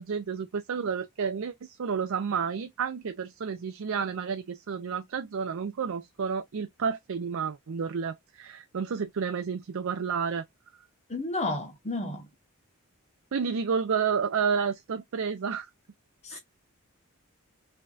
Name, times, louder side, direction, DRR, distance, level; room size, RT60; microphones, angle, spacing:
voice 1, 0.0-10.4 13.3-15.7 16.3-16.4, right 6 dB, 65° right, 0.5 m, -30 dB
voice 2, 11.1-12.3 16.2-16.4, left 2 dB, 30° left, 1.0 m, -32 dB
5.4 x 2.7 x 2.3 m
head